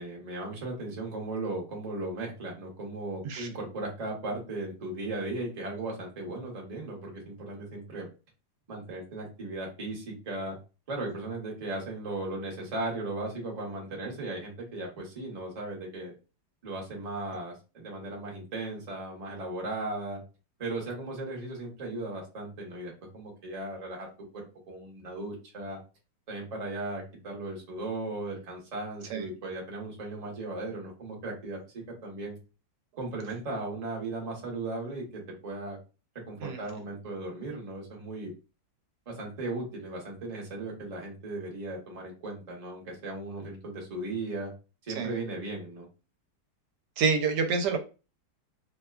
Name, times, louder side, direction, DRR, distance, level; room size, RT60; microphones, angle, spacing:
voice 1, 0.0-8.1 8.7-10.6 10.9-16.1 16.6-20.2 20.6-25.8 26.3-32.4 33.0-35.8 36.3-38.3 39.1-44.5 44.8-45.9, right 2 dB, 35° right, -1 dB, 0.6 m, -37 dB
voice 2, 47.0-47.8, right 5 dB, 80° right, 5 dB, 1.1 m, -27 dB
2.8 x 2.2 x 2.2 m, 0.31 s
omnidirectional pair, 1.9 m